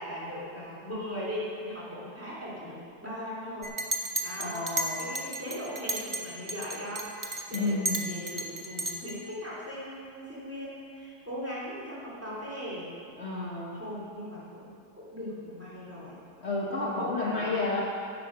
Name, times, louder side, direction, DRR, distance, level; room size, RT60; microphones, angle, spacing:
voice 1, 0.0-3.7 4.2-4.6 5.0-12.9 13.7-16.2 16.8-17.8, equal, 10° right, -7 dB, 2.6 m, -39 dB
Chink clink, 3.6-6.2 6.5-9.2, right 2 dB, 35° right, 0.5 m, -33 dB
voice 2, 4.4-5.1 7.5-8.1 13.2-13.8 16.4-17.8, left 3 dB, 40° left, -5 dB, 1.3 m, -31 dB
9.9 x 9.1 x 5.3 m, 2.4 s
omnidirectional pair, 1.9 m